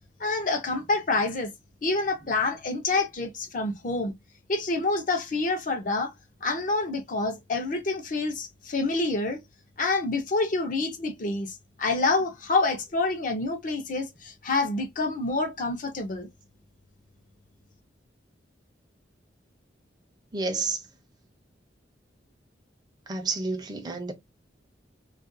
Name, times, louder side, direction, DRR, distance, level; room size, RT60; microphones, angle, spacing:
voice 1, 0.2-1.5 1.8-4.1 4.5-6.1 6.4-9.4 9.8-16.3, left 3 dB, 45° left, 0.6 m, -27 dB
voice 2, 20.3-20.9 23.1-24.1, right 3 dB, 20° right, 0.5 m, -30 dB
2.4 x 2.2 x 2.5 m
head